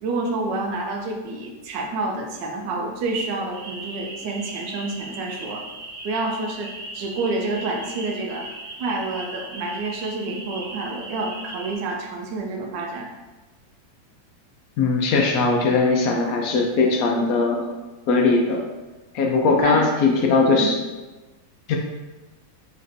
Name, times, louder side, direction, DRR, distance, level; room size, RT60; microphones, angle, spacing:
voice 1, 0.0-5.6 6.0-8.5 8.8-13.1 19.6-19.8 20.5-20.7, right 3 dB, 80° right, 1 dB, 1.2 m, -28 dB
sound 1, 3.5-11.8, right 2 dB, 60° right, 0.8 m, -38 dB
voice 2, 14.8-17.7 18.1-18.6 19.1-20.7 21.7-21.8, left 3 dB, 75° left, 1 dB, 0.8 m, -19 dB
4.0 x 3.2 x 2.5 m, 1.2 s
omnidirectional pair, 2.0 m